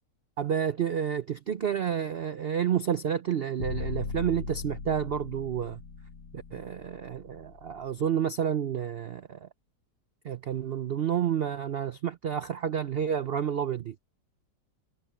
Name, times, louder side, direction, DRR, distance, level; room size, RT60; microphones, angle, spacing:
voice 1, 0.4-5.8 6.3-9.5 10.2-13.9, right 8 dB, 70° right, 0.5 m, -30 dB
sound 1, 3.6-7.7, left 4 dB, 85° left, 2.1 m, -38 dB
omnidirectional pair, 1.9 m